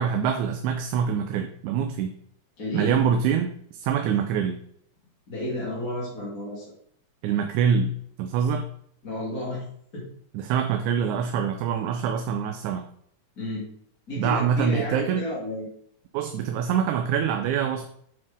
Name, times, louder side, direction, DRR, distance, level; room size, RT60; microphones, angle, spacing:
voice 1, 0.0-2.1 2.7-4.6 7.2-8.7 10.3-12.8 14.2-15.3 16.1-17.9, right 7 dB, 80° right, 6 dB, 2.1 m, -25 dB
voice 2, 2.6-3.0 5.3-6.7 9.0-9.6 9.9-10.0 13.4-13.7 14.1-15.7, left 1 dB, 30° left, -7 dB, 3.0 m, -32 dB
9.1 x 6.1 x 3.7 m, 0.65 s
omnidirectional pair, 3.4 m